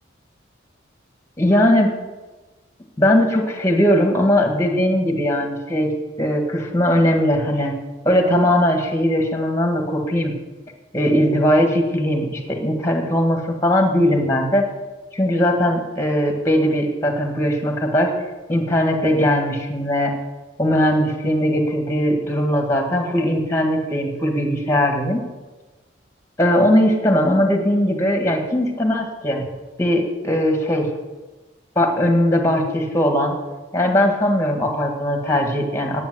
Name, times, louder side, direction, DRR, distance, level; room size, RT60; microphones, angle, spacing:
voice 1, 1.4-1.9 3.0-5.9 6.2-7.7 8.1-10.3 10.9-14.7 15.1-18.1 18.5-20.1 20.6-25.2 26.4-29.5 29.8-30.9 31.8-33.3 33.7-36.0, equal, 15° left, 3 dB, 1.8 m, -19 dB
10.5 x 8.3 x 7.9 m, 1.2 s
head